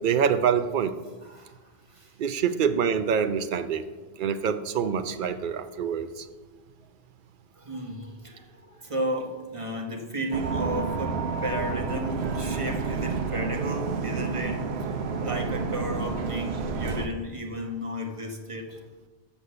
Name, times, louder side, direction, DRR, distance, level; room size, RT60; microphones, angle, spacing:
voice 1, 0.0-0.9 2.2-3.9 4.2-6.3, right 7 dB, 55° right, 10 dB, 0.7 m, -25 dB
voice 2, 1.2-1.6 1.9-2.1 5.4-5.7 7.5-18.8, right 1 dB, 30° right, 2 dB, 1.2 m, -34 dB
sound 1, 10.3-17.1, right 4 dB, 75° right, 1.0 m, -30 dB
8.3 x 6.4 x 6.7 m, 1.3 s
omnidirectional pair, 1.1 m